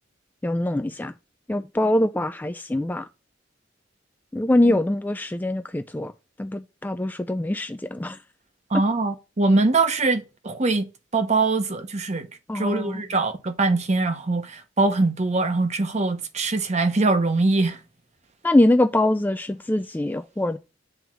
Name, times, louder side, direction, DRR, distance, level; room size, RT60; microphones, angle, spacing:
voice 1, 0.4-1.1 1.5-3.1 4.3-6.1 6.4-8.2 12.5-13.0 18.4-20.6, left 1 dB, 10° left, 0.3 m, -23 dB
voice 2, 8.7-12.3 12.5-17.8, right 3 dB, 35° right, 0.9 m, -23 dB
7.8 x 3.5 x 6.0 m
head